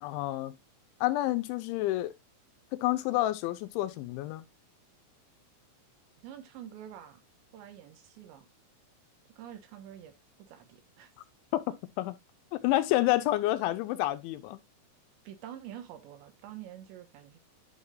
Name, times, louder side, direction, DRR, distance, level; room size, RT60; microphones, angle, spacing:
voice 1, 0.0-0.6 1.0-2.1 2.7-4.4 11.5-11.6 12.0-12.2 12.5-14.6, left 16 dB, 85° left, 3.1 m, -29 dB
voice 2, 6.2-7.2 7.5-8.5 9.4-10.1 10.4-11.1 15.3-17.4, right 11 dB, 80° right, 3.4 m, -47 dB
11.5 x 5.6 x 2.4 m
omnidirectional pair, 5.3 m